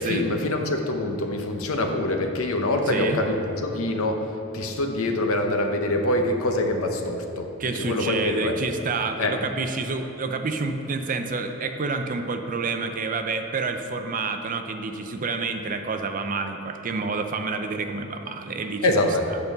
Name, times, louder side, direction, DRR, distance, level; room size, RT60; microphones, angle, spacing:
voice 1, 0.0-7.5 7.8-8.6 9.2-9.3 18.8-19.3, left 1 dB, 65° left, 4 dB, 0.8 m, -25 dB
voice 2, 2.9-3.2 7.6-18.9 19.3-19.4, right 4 dB, 35° right, 6 dB, 0.5 m, -28 dB
8.4 x 5.3 x 6.6 m, 3.0 s
head